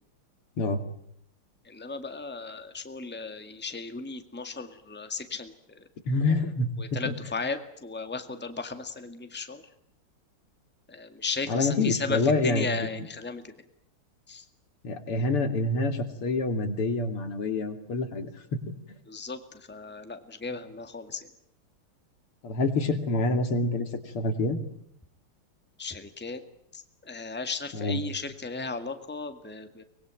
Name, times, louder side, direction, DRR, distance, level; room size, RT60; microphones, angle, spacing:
voice 1, 1.7-5.5 7.0-9.6 10.9-12.2 12.4-13.4 14.3-14.4 19.1-19.4 19.7-21.2 25.8-26.4 26.7-29.8, left 4 dB, 5° left, 8 dB, 1.8 m, -35 dB
voice 2, 6.1-7.3 11.5-13.1 14.8-18.6 22.4-24.6 27.7-28.0, left 2 dB, 80° left, 8 dB, 3.5 m, -27 dB
24.5 x 21.0 x 9.0 m, 0.71 s
omnidirectional pair, 2.4 m